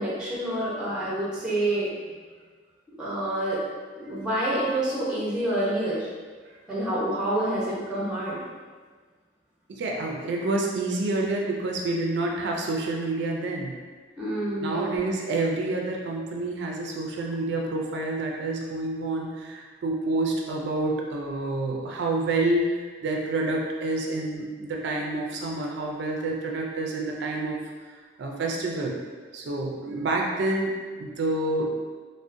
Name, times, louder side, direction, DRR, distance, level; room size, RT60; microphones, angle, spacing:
voice 1, 0.0-1.9 3.0-3.6 3.9-6.1 6.7-8.4 14.2-15.0, right 1 dB, 5° right, -7 dB, 0.7 m, -27 dB
voice 2, 9.7-13.8 14.6-27.6 27.9-29.0 29.3-30.7 31.0-31.7, right 2 dB, 70° right, 0 dB, 0.4 m, -28 dB
3.5 x 2.1 x 2.5 m, 1.5 s
head